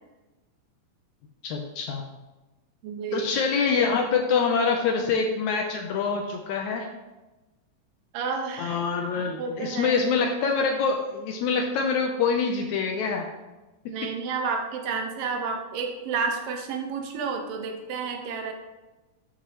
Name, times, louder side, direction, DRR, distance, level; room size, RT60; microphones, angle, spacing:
voice 1, 1.4-2.0 3.1-6.9 8.6-13.3 13.9-14.1, left 5 dB, 80° left, 3 dB, 1.8 m, -25 dB
voice 2, 2.8-3.3 8.1-8.8 9.4-10.0 13.9-18.5, right 5 dB, 85° right, 3 dB, 2.8 m, -30 dB
12.0 x 6.7 x 3.0 m, 1.1 s
omnidirectional pair, 3.9 m